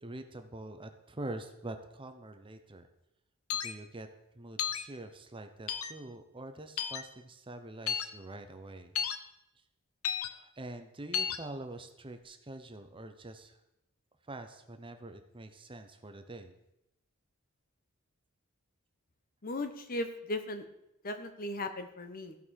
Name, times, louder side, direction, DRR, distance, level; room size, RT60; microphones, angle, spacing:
voice 1, 0.0-2.9 3.5-4.1 4.3-8.9 10.2-13.6 14.2-16.5, right 2 dB, 25° right, 7 dB, 0.9 m, -45 dB
sound 1, 3.5-3.7 4.6-4.8 5.7-5.9 6.8-7.0 7.9-8.1 8.9-9.2 10.0-10.3 11.1-11.4, left 8 dB, 70° left, 0.8 m, -32 dB
voice 2, 19.4-20.6 21.0-22.4, left 1 dB, 40° left, 8 dB, 1.0 m, -37 dB
15.0 x 5.5 x 6.4 m, 0.86 s
head